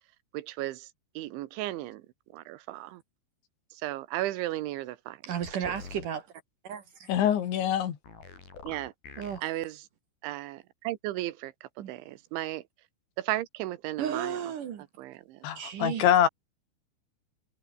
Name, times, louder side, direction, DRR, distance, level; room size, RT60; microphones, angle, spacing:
voice 1, 0.3-0.9 1.2-2.1 2.3-3.0 3.7-5.2 5.7-5.8 8.6-8.9 9.4-9.8 10.2-12.6 13.2-14.4 15.0-15.5, right 16 dB, 85° right, 3.5 m, -35 dB
voice 2, 5.2-6.3 6.6-7.1 9.2-9.4 11.8-11.9 14.0-14.8 15.6-16.0, right 8 dB, 55° right, 2.6 m, -34 dB
sound 1, 5.4-6.1 8.0-9.4, left 5 dB, 55° left, 6.6 m, -45 dB
voice 3, 7.1-8.0 15.4-16.3, left 10 dB, 75° left, 4.8 m, -24 dB
omnidirectional pair, 5.3 m